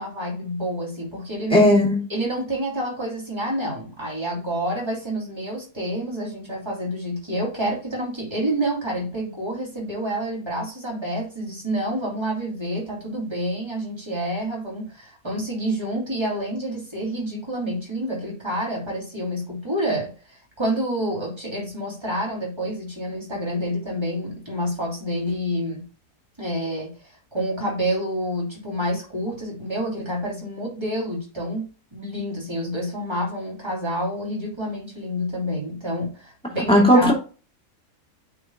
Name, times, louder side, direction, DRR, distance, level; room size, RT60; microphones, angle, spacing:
voice 1, 0.0-1.7 2.1-25.8 26.4-26.9 27.3-37.1, right 1 dB, 15° right, -3 dB, 3.0 m, -28 dB
voice 2, 1.5-2.0 36.7-37.1, left 1 dB, 5° left, -2 dB, 2.4 m, -15 dB
8.7 x 4.9 x 2.2 m, 0.35 s
omnidirectional pair, 1.8 m